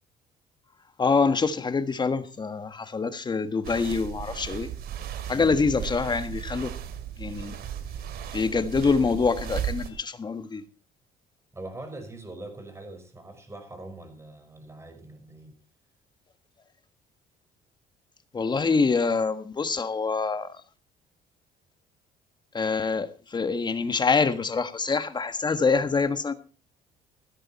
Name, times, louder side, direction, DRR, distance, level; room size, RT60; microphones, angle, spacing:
voice 1, 1.0-4.7 5.3-6.7 7.2-7.5 8.3-10.6 18.3-20.6 22.5-26.3, left 4 dB, 25° left, 1.5 m, -25 dB
sound 1, 3.6-9.9, right 9 dB, 65° right, 2.6 m, -35 dB
voice 2, 5.3-5.6 11.5-15.6, right 2 dB, 15° right, 5.3 m, -42 dB
16.0 x 13.0 x 4.3 m
cardioid pair, 110°, 17 cm